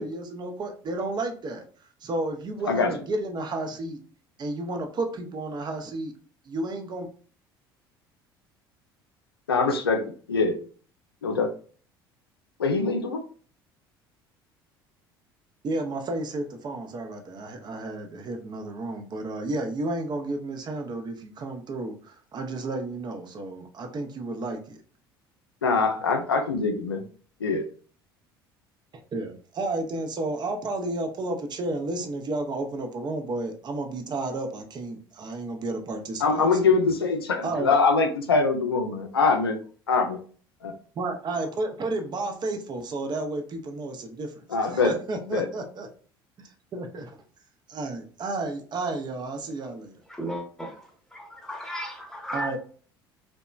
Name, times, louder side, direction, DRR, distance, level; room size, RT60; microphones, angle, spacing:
voice 1, 0.0-1.7 2.0-4.0 4.4-6.1 6.5-7.1 15.6-24.8 29.1-36.5 37.4-37.7 41.0-45.9 46.7-47.2 47.7-49.9 52.3-52.6, right 2 dB, 35° right, 0.6 m, -32 dB
voice 2, 9.5-10.0 10.3-10.6 11.2-11.5 12.6-13.2 25.6-27.0 27.4-27.6 36.2-39.6 39.9-40.2 40.6-40.7 44.5-45.0 45.3-45.5, left 4 dB, 85° left, 0.4 m, -23 dB
voice 3, 50.1-50.8 51.1-52.6, equal, 5° left, 0.9 m, -35 dB
2.8 x 2.1 x 2.3 m
figure-of-eight pair, 65°, 12 cm